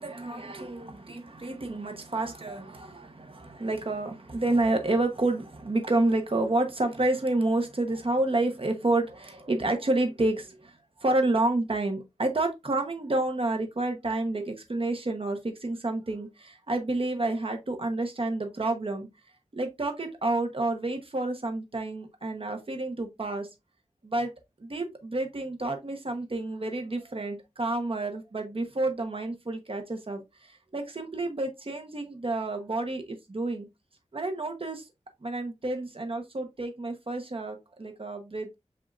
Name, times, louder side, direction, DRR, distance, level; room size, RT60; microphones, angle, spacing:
voice 1, 0.0-19.1 19.5-23.5 24.0-24.3 24.6-33.7 34.1-34.8 35.2-38.5, right 2 dB, 50° right, 1.1 m, -29 dB
7.4 x 2.7 x 2.5 m
wide cardioid pair, 55°, 12 cm